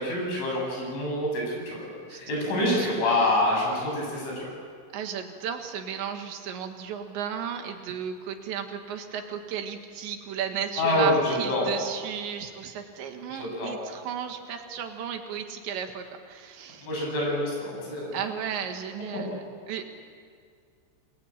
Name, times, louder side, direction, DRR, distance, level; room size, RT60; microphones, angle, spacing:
voice 1, 0.0-4.5 10.8-11.7 13.3-13.7 16.9-18.2, left 1 dB, 80° left, -2 dB, 10.5 m, -26 dB
voice 2, 2.8-3.2 4.9-16.9 18.1-19.8, right 8 dB, 75° right, 5 dB, 3.9 m, -34 dB
28.0 x 20.0 x 8.9 m, 2.1 s
omnidirectional pair, 5.4 m